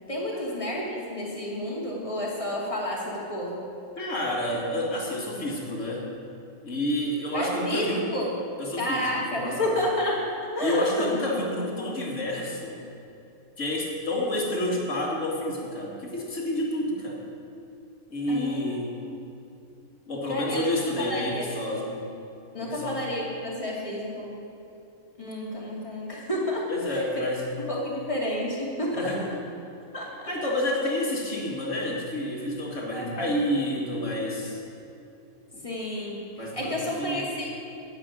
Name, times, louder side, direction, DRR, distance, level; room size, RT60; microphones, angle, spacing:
voice 1, 0.0-3.6 7.3-8.3 8.8-11.1 18.3-18.6 20.3-20.6 21.0-21.5 22.5-24.3 25.2-27.3 27.6-29.1 29.9-30.3 32.9-33.3 35.6-37.4, left 1 dB, 20° left, -5 dB, 2.6 m, -30 dB
voice 2, 4.0-6.1 6.6-8.1 8.6-9.7 10.6-12.8 13.6-17.2 18.1-18.9 20.1-22.0 22.6-23.0 26.7-27.5 28.9-29.3 30.3-34.6 35.5-35.6 36.4-37.4, left 1 dB, 55° left, -2 dB, 2.3 m, -29 dB
10.0 x 7.7 x 9.4 m, 2.8 s
omnidirectional pair, 1.5 m